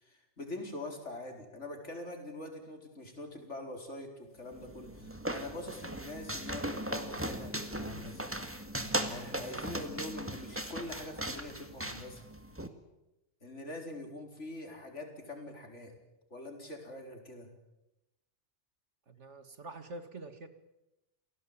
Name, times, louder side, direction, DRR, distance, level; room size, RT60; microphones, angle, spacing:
voice 1, 0.0-8.3 9.1-12.2 13.4-16.0 16.3-17.5, left 1 dB, 80° left, 3 dB, 4.8 m, -44 dB
sound 1, 4.5-12.7, right 1 dB, 10° right, 1.9 m, -38 dB
voice 2, 19.1-20.5, right 2 dB, 75° right, 9 dB, 2.3 m, -46 dB
29.0 x 17.5 x 8.8 m, 0.95 s
omnidirectional pair, 1.2 m